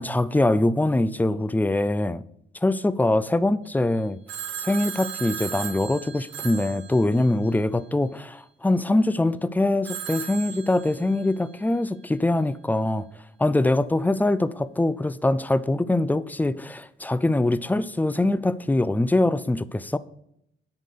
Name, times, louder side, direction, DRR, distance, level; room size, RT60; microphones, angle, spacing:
voice 1, 0.0-2.2 2.6-4.2 4.6-13.1 13.4-20.0, left 2 dB, 10° left, 0.5 m, -23 dB
Telephone, 4.3-7.6 9.8-11.4, right 9 dB, 75° right, 1.2 m, -36 dB
9.3 x 5.9 x 6.7 m
cardioid pair, 90°, 20 cm